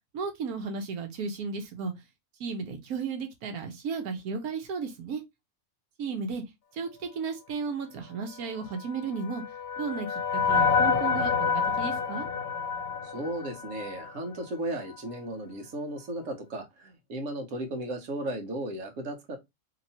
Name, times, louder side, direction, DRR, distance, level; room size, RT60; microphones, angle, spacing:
voice 1, 0.1-1.9 2.4-5.2 6.0-6.4 6.7-9.4 9.8-11.5 11.8-12.3, right 5 dB, 90° right, 1.3 m, -34 dB
sound 1, 8.8-14.2, left 6 dB, 50° left, 0.8 m, -28 dB
voice 2, 13.0-19.4, right 1 dB, 60° right, 1.4 m, -35 dB
3.0 x 2.9 x 4.1 m
omnidirectional pair, 1.5 m